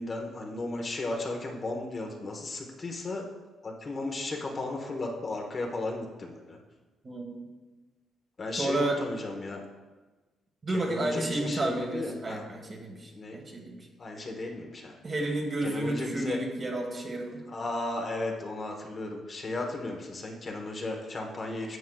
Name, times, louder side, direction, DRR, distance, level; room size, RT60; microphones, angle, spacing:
voice 1, 0.0-3.2 3.6-6.6 8.4-9.6 10.7-12.4 13.1-13.4 14.0-15.0 15.6-16.4 17.5-21.8, left 2 dB, 40° left, 1 dB, 1.1 m, -35 dB
voice 2, 7.0-7.4 8.6-9.0 10.6-13.8 15.0-17.4, right 2 dB, 35° right, 1 dB, 1.5 m, -31 dB
9.4 x 7.3 x 2.3 m, 1.2 s
cardioid pair, 90°, 0 cm